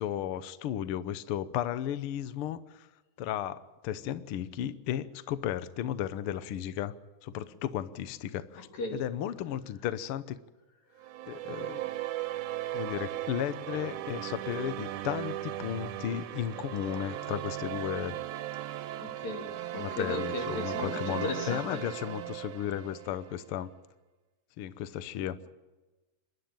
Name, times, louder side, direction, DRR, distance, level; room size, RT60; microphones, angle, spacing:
voice 1, 0.0-2.6 3.2-6.9 7.2-8.7 8.9-10.4 11.3-11.8 12.7-18.2 19.8-23.7 24.6-25.4, left 11 dB, 80° left, 14 dB, 1.2 m, -34 dB
voice 2, 8.5-9.0 19.0-21.8, left 2 dB, 65° left, 2 dB, 4.2 m, -36 dB
sound 1, 11.0-23.4, right 14 dB, 80° right, 2.2 m, -37 dB
27.0 x 12.0 x 9.0 m, 1.2 s
omnidirectional pair, 3.5 m